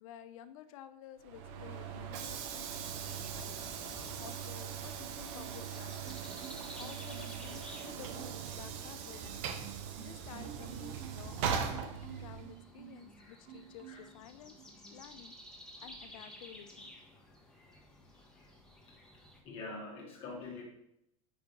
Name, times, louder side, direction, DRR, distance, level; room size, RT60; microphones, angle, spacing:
voice 1, 0.0-6.2 6.8-9.2 10.0-14.6 14.9-15.4 15.8-16.9, left 10 dB, 70° left, 11 dB, 0.6 m, -52 dB
Train / Sliding door, 1.2-12.6, right 7 dB, 55° right, 0.8 m, -40 dB
sound 1, 2.8-19.4, left 1 dB, 5° left, 1.0 m, -54 dB
Marimba xylophone, 5.0-5.8 6.0-7.5 7.8-8.5 8.9-13.1 13.4-14.2 14.6-14.8, right 11 dB, 40° right, 0.4 m, -52 dB
voice 2, 18.1-18.5 19.4-20.6, left 3 dB, 30° left, -2 dB, 1.1 m, -45 dB
5.0 x 4.5 x 5.3 m, 0.83 s
supercardioid pair, 150°, 18 cm